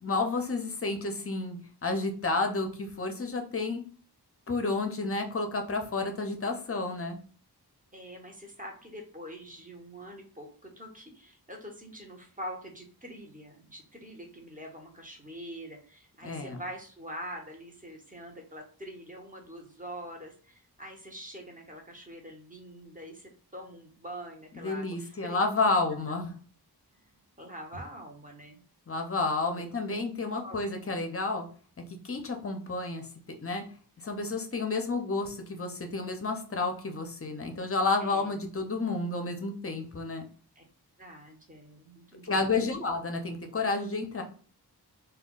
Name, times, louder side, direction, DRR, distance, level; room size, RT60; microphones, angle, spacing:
voice 1, 0.0-3.8 4.5-7.2 16.2-16.6 24.5-26.3 28.9-31.5 32.0-33.1 33.4-33.6 34.0-40.3 42.2-44.2, left 3 dB, 35° left, 4 dB, 0.5 m, -30 dB
voice 2, 7.9-25.4 27.0-28.6 29.6-29.7 30.4-30.6 30.9-31.0 38.0-38.4 40.6-40.7 41.0-42.8, equal, 20° right, 1 dB, 0.8 m, -44 dB
2.2 x 2.2 x 3.6 m, 0.42 s
wide cardioid pair, 80°, 40 cm